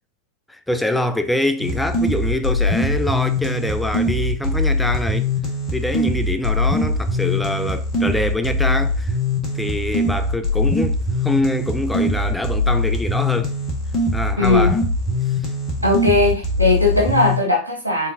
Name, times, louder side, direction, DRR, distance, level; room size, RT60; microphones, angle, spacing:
voice 1, 0.5-5.3 5.7-9.1 9.5-13.5 14.1-14.8, left 1 dB, 5° left, 0.4 m, -24 dB
sound 1, 1.6-17.4, left 2 dB, 30° left, 1.4 m, -22 dB
voice 2, 14.4-14.7 15.8-18.1, left 2 dB, 85° left, 1.5 m, -18 dB
4.1 x 3.8 x 2.6 m
figure-of-eight pair, 90°, 0 cm